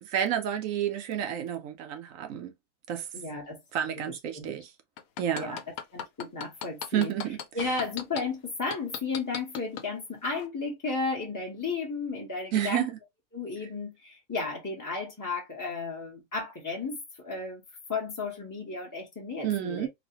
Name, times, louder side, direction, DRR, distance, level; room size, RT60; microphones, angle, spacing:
voice 1, 0.0-2.5 2.9-3.1 3.7-4.7 5.2-5.6 6.9-7.4 12.5-13.0 19.4-19.9, right 10 dB, 70° right, 1.0 m, -30 dB
voice 2, 3.1-3.6 3.9-4.5 5.3-5.6 5.9-7.1 7.5-12.9 13.3-17.6 17.9-19.9, left 4 dB, 20° left, 0.7 m, -34 dB
sound 1, 5.0-8.2 8.7-9.9 10.3-10.4, left 9 dB, 85° left, 1.1 m, -36 dB
4.0 x 2.1 x 2.7 m
omnidirectional pair, 1.5 m